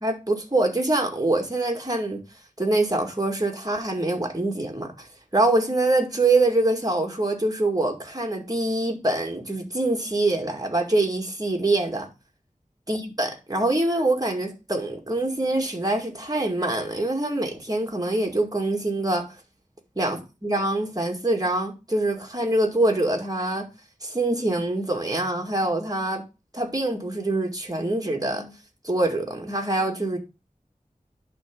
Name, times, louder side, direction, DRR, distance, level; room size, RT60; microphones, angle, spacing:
voice 1, 0.0-2.2 2.6-5.1 5.3-12.1 12.9-19.3 20.0-23.7 24.0-26.2 26.5-28.6 28.8-30.2, right 2 dB, 25° right, 2.1 m, -24 dB
11.0 x 3.6 x 5.3 m
wide cardioid pair, 45°, 14 cm